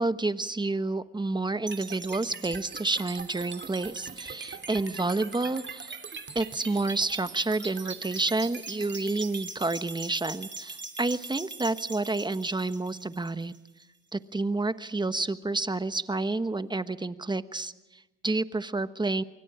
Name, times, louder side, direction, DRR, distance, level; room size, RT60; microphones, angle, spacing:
voice 1, 0.0-5.9 6.3-13.5 14.1-19.2, right 2 dB, 15° right, 12 dB, 1.2 m, -29 dB
sound 1, 1.7-13.7, right 5 dB, 35° right, 2.9 m, -41 dB
26.5 x 23.5 x 4.9 m, 1.1 s
cardioid pair, 90°, 30 cm